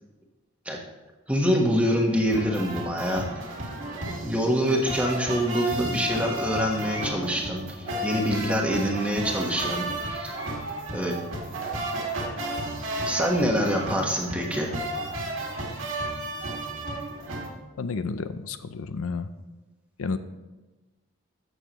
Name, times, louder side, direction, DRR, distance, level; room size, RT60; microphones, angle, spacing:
voice 1, 1.3-3.2 4.2-10.4 10.9-11.1 13.0-14.7, equal, 5° right, -1 dB, 1.2 m, -25 dB
sound 1, 2.3-17.5, right 1 dB, 70° right, 2.0 m, -33 dB
voice 2, 17.8-19.3 20.0-20.2, left 4 dB, 80° left, 11 dB, 0.5 m, -31 dB
14.5 x 6.8 x 3.0 m, 1.2 s
head